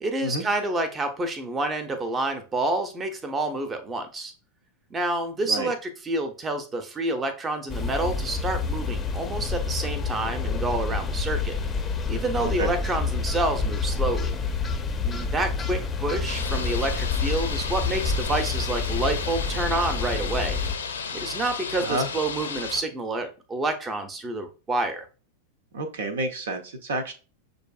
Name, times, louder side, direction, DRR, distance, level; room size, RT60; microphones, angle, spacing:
voice 1, 0.0-4.3 4.9-11.5 12.1-14.3 15.0-20.6 21.1-25.1, right 2 dB, 20° right, 9 dB, 0.7 m, -28 dB
sound 1, 7.7-20.7, left 4 dB, 20° left, 0.6 m, -28 dB
sound 2, 16.2-22.8, left 6 dB, 70° left, 0.6 m, -34 dB
voice 2, 25.7-27.1, right 2 dB, 60° right, 7 dB, 0.6 m, -29 dB
6.5 x 2.6 x 2.3 m, 0.34 s
figure-of-eight pair, 90°, 0 cm